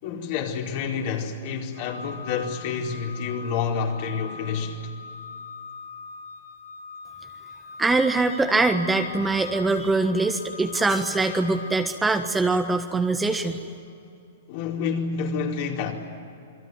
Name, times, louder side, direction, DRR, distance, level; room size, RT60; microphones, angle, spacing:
voice 1, 0.0-4.8 14.5-15.9, left 6 dB, 50° left, 4.7 m, -28 dB
Organ, 1.7-12.5, left 4 dB, 90° right, 7.2 m, -41 dB
voice 2, 7.8-13.6, right 3 dB, 10° right, 1.4 m, -23 dB
28.0 x 22.0 x 9.6 m
hypercardioid pair, 130°, 0 cm